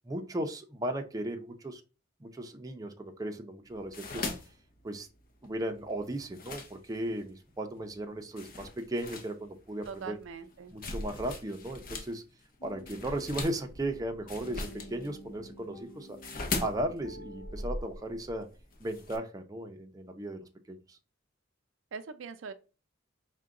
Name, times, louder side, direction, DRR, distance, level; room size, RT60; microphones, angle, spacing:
voice 1, 0.0-1.8 2.2-4.3 4.8-5.1 5.4-10.2 10.7-12.2 12.6-16.2 16.6-18.5 18.8-21.0, right 1 dB, 20° right, 0.5 m, -36 dB
sound 1, 3.7-7.3 7.8-8.0 8.4-12.1 12.4-19.2, left 3 dB, 45° left, 0.7 m, -40 dB
voice 2, 9.9-10.7 21.9-22.5, right 5 dB, 75° right, 0.4 m, -42 dB
sound 2, 12.6-18.4, equal, 85° left, 0.7 m, -50 dB
4.6 x 2.2 x 3.6 m
head